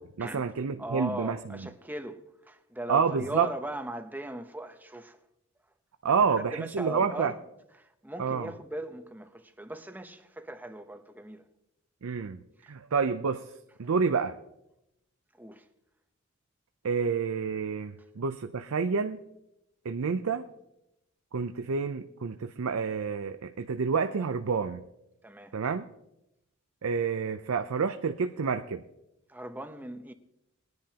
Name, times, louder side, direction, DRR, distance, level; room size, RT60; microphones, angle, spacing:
voice 1, 0.2-1.6 2.9-3.5 6.0-7.3 8.2-8.5 12.0-12.4 12.7-13.5 13.8-14.4 16.8-19.2 19.8-20.4 21.3-24.8 25.5-25.9 26.8-28.8, right 5 dB, 85° right, 0.5 m, -28 dB
voice 2, 0.8-5.2 6.0-7.5 7.8-11.4 15.4-15.7 25.2-25.6 29.3-30.1, right 1 dB, 10° right, 0.8 m, -39 dB
20.0 x 10.5 x 2.9 m
head